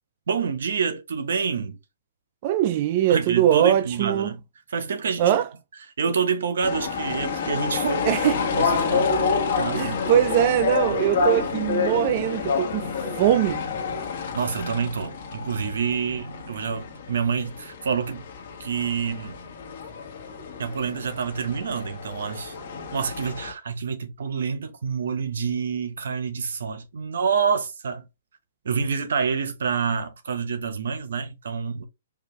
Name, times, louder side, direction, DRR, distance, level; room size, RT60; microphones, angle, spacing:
voice 1, 0.3-1.8 3.1-4.4 4.7-5.4 6.0-8.1 8.5-9.1 9.6-10.0 14.3-18.2 18.6-19.4 20.6-22.5 22.9-28.0 28.6-31.8, right 6 dB, 75° right, 1.1 m, -27 dB
voice 2, 2.4-4.3 5.2-5.5 8.1-8.3 9.7-12.9 13.1-13.6, right 11 dB, 35° right, 0.3 m, -21 dB
sound 1, 6.6-23.5, left 5 dB, 50° left, 1.2 m, -28 dB
4.8 x 2.6 x 3.2 m
hypercardioid pair, 155°, 0 cm